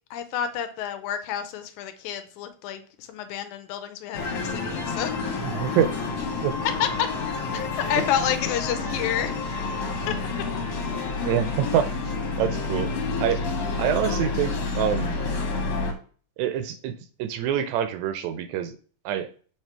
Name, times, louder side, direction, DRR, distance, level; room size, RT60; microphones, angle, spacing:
voice 1, 0.1-5.2 6.8-7.1 7.5-9.3 10.1-10.2, left 9 dB, 85° left, 9 dB, 2.1 m, -29 dB
sound 1, 4.1-15.9, left 3 dB, 60° left, 2.2 m, -29 dB
voice 2, 5.4-5.9 6.4-6.5 8.0-8.1 11.2-11.9 12.4-12.9 13.2-13.4 13.8-15.2 16.4-16.9 17.2-18.7 19.1-19.3, right 10 dB, 80° right, 10 dB, 1.7 m, -25 dB
7.4 x 2.9 x 4.4 m, 0.42 s
omnidirectional pair, 3.5 m